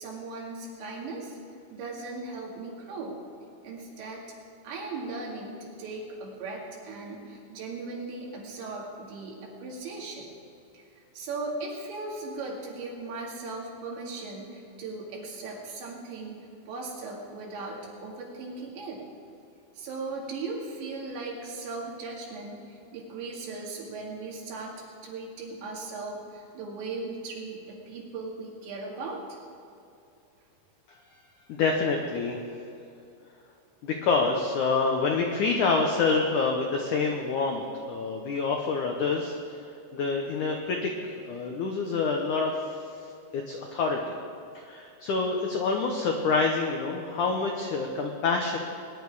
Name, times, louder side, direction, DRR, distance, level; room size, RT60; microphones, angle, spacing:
voice 1, 0.0-1.4 1.7-3.2 3.6-4.3 4.6-10.3 10.7-19.0 19.7-29.2, right 3 dB, 80° right, -2 dB, 4.6 m, -38 dB
voice 2, 31.5-32.4 33.8-39.4 39.9-42.6 43.3-44.2 44.6-48.6, left 4 dB, 85° left, 2 dB, 1.8 m, -27 dB
20.5 x 10.5 x 4.8 m, 2.6 s
omnidirectional pair, 5.0 m